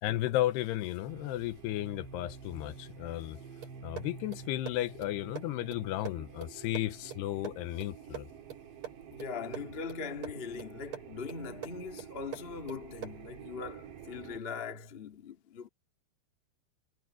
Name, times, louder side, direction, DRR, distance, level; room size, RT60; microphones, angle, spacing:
voice 1, 0.0-3.4 3.8-8.3, left 15 dB, 85° left, 2.8 m, -34 dB
sound 1, 1.1-14.4, right 7 dB, 85° right, 4.9 m, -49 dB
sound 2, 3.6-13.3, right 10 dB, 40° right, 5.9 m, -47 dB
voice 2, 9.1-15.7, left 5 dB, 45° left, 0.7 m, -41 dB
omnidirectional pair, 4.8 m